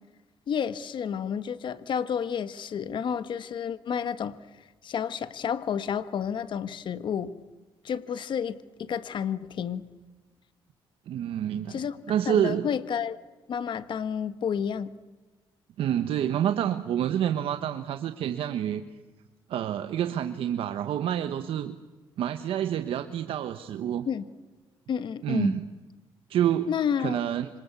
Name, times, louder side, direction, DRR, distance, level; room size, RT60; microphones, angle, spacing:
voice 1, 0.5-4.4 4.8-7.3 7.8-9.9 11.7-12.0 12.3-13.2 13.5-14.9 24.1-24.2 24.9-25.6 26.7-27.2, left 7 dB, 60° left, 1.3 m, -30 dB
voice 2, 11.1-11.8 12.1-12.7 15.8-18.9 19.5-21.8 22.2-24.1 25.2-25.7 26.3-26.7 27.0-27.5, right 10 dB, 80° right, 1.3 m, -28 dB
26.5 x 26.0 x 8.4 m
cardioid pair, 110°, 9 cm